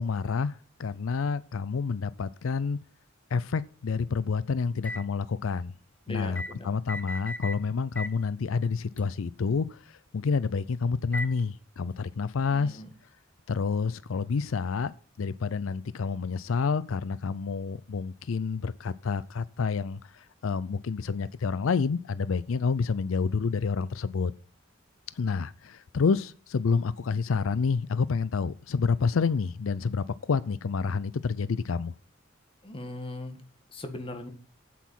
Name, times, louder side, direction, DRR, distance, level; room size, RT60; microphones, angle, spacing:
voice 1, 0.0-2.8 3.3-5.7 6.1-9.8 10.1-12.8 13.5-14.9 15.2-24.3 25.2-31.9, left 5 dB, 90° left, 0.5 m, -29 dB
sound 1, 4.8-5.1 6.4-6.5 6.9-7.6 8.0-8.2 9.0-9.1 11.1-11.4, left 1 dB, 5° left, 0.4 m, -36 dB
voice 2, 6.1-6.7 12.5-12.9 32.6-33.4 33.7-34.3, left 1 dB, 25° left, 1.8 m, -39 dB
8.3 x 8.3 x 5.8 m
head